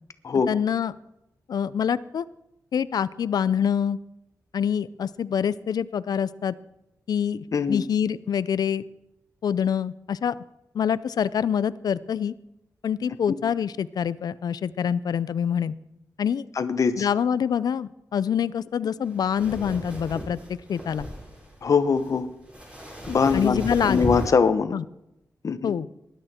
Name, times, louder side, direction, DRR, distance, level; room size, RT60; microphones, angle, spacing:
voice 1, 0.5-0.9 1.5-2.2 2.7-4.0 4.5-6.5 7.1-8.8 9.4-10.3 10.7-12.3 12.8-15.7 16.2-16.5 17.0-21.1 23.3-24.1 24.7-24.8 25.6-25.9, left 8 dB, 80° left, 17 dB, 0.5 m, -25 dB
voice 2, 7.5-7.8 16.6-17.1 21.6-22.3 23.1-23.6 23.9-24.7 25.4-25.7, left 5 dB, 55° left, 11 dB, 1.0 m, -22 dB
sound 1, 19.1-24.3, equal, 15° right, 4.5 m, -35 dB
19.5 x 11.5 x 4.4 m, 0.86 s
wide cardioid pair, 140°, 7 cm